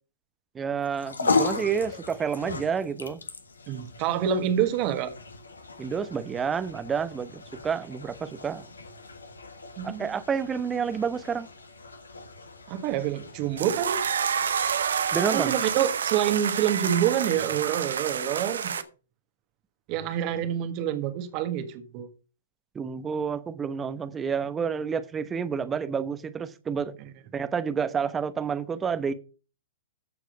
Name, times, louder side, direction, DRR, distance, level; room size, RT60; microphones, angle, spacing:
voice 1, 0.5-3.2 5.8-8.7 9.8-11.5 15.1-15.5 22.7-27.0 27.3-29.1, right 6 dB, 15° right, 0.9 m, -29 dB
sound 1, 0.8-17.3, left 3 dB, 75° left, 1.5 m, -36 dB
voice 2, 3.7-5.1 9.8-10.2 12.7-14.0 15.3-18.8 19.9-22.1, right 10 dB, 35° right, 1.6 m, -27 dB
sound 2, 13.6-18.8, right 7 dB, 65° right, 0.9 m, -28 dB
13.5 x 4.8 x 5.1 m
figure-of-eight pair, 115°, 0 cm